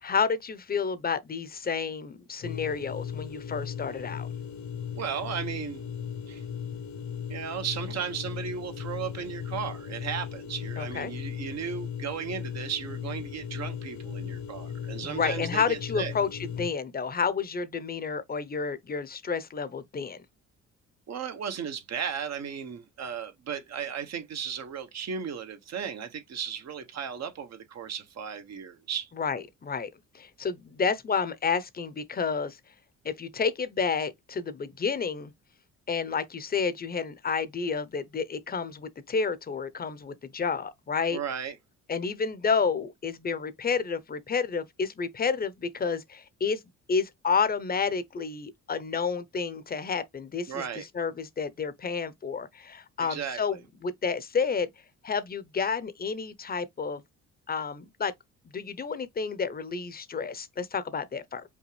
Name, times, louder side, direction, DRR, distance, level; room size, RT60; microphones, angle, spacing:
voice 1, 0.0-4.3 10.8-11.1 15.0-16.3 16.6-20.2 29.2-29.9 30.1-32.6 33.0-35.3 35.9-41.2 41.9-46.6 46.9-54.7 55.0-57.0 57.5-58.1 58.5-61.4, left 5 dB, 30° left, 0.8 m, -30 dB
sound 1, 2.4-16.7, left 8 dB, 70° left, 1.0 m, -37 dB
voice 2, 4.9-5.9 6.3-6.4 7.3-16.1 21.1-29.1 41.1-41.6 50.5-50.8 53.0-53.6, right 7 dB, 60° right, 1.1 m, -35 dB
5.3 x 2.4 x 3.3 m
cardioid pair, 90°, 30 cm